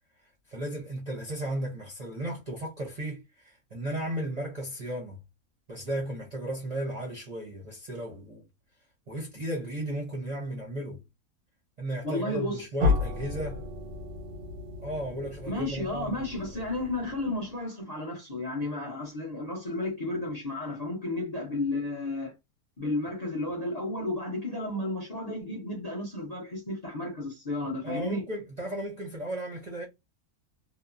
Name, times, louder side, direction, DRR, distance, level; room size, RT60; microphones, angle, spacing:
voice 1, 0.5-5.2 5.7-8.4 9.1-11.0 11.8-13.7 14.8-16.1 27.8-29.8, right 1 dB, 35° right, 0.7 m, -35 dB
voice 2, 12.0-12.6 15.5-22.3 22.8-28.2, left 2 dB, 35° left, 0.7 m, -32 dB
sound 1, 12.8-17.6, left 4 dB, 85° right, 1.2 m, -33 dB
2.9 x 2.0 x 2.5 m
omnidirectional pair, 1.6 m